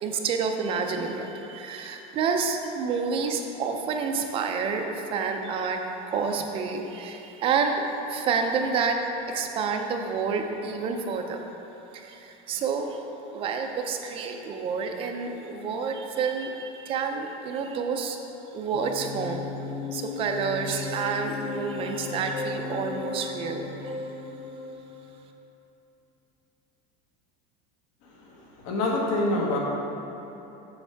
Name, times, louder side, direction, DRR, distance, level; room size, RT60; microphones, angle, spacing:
voice 1, 0.0-5.8 6.1-7.8 8.1-9.0 9.3-11.4 11.9-13.0 13.3-18.2 18.5-19.5 19.9-24.0, right 5 dB, 25° right, 4 dB, 0.4 m, -29 dB
sound 1, 18.7-25.3, left 4 dB, 25° left, 0.6 m, -36 dB
voice 2, 28.0-29.6, left 2 dB, 60° left, -2 dB, 1.4 m, -27 dB
7.1 x 7.1 x 3.4 m, 3.0 s
cardioid pair, 170°, 21 cm